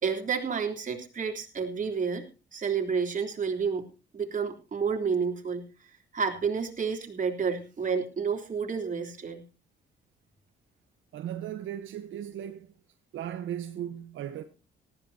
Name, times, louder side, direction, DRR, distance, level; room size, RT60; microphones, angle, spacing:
voice 1, 0.0-2.3 2.5-3.9 4.1-5.6 6.1-9.4, right 6 dB, 40° right, 3.5 m, -30 dB
voice 2, 11.1-12.7 13.1-14.4, right 10 dB, 75° right, 1.1 m, -37 dB
18.5 x 14.5 x 2.8 m
cardioid pair, 90°, 20 cm